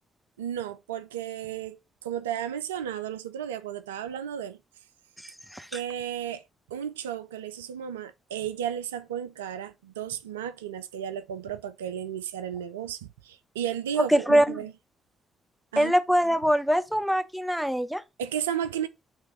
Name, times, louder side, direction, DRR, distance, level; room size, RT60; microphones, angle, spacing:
voice 1, 0.4-4.6 5.7-6.4 6.7-14.7 15.7-15.9 18.2-18.9, right 9 dB, 85° right, 0.3 m, -33 dB
voice 2, 5.2-5.8 14.1-14.6 15.8-18.0, equal, 5° right, 1.0 m, -23 dB
8.6 x 3.1 x 4.0 m
hypercardioid pair, 40°, 0 cm